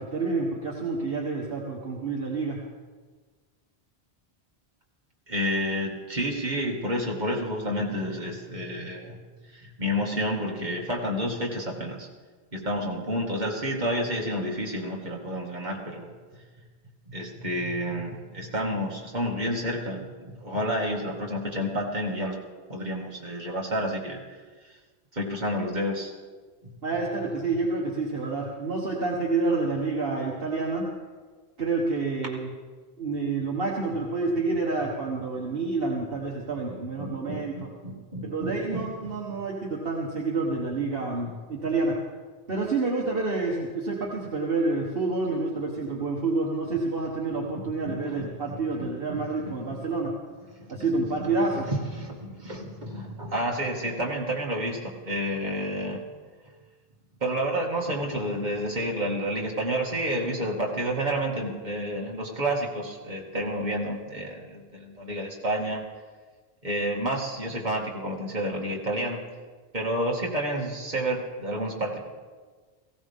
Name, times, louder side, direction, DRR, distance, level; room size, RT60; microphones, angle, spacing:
voice 1, 0.0-2.6 26.8-30.9 31.6-32.5 33.0-37.7 38.2-39.5 39.8-42.0 42.5-50.1 50.7-51.7, right 3 dB, 60° right, -2 dB, 1.7 m, -28 dB
voice 2, 5.3-9.2 9.5-12.1 12.5-16.1 17.1-22.4 22.7-24.4 25.1-26.1 36.7-39.4 47.8-48.5 49.1-49.8 50.6-50.8 51.2-51.3 51.6-56.0 57.2-65.8 66.6-69.2 69.7-72.0, equal, 45° right, -2 dB, 2.3 m, -30 dB
18.5 x 16.0 x 3.6 m, 1.4 s
omnidirectional pair, 1.1 m